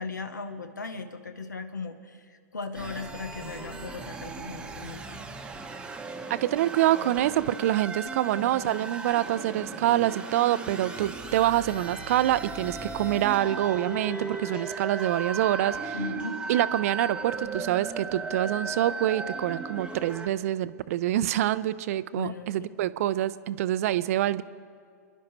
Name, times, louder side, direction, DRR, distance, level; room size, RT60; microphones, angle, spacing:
voice 1, 0.0-5.2 15.9-16.4 22.1-22.5, left 4 dB, 85° left, 9 dB, 1.0 m, -37 dB
sound 1, 2.7-20.3, right 3 dB, 10° right, 0.9 m, -36 dB
voice 2, 6.3-16.0 16.5-24.4, right 13 dB, 55° right, 17 dB, 0.5 m, -26 dB
27.5 x 11.0 x 3.1 m, 2.2 s
figure-of-eight pair, 110°, 10 cm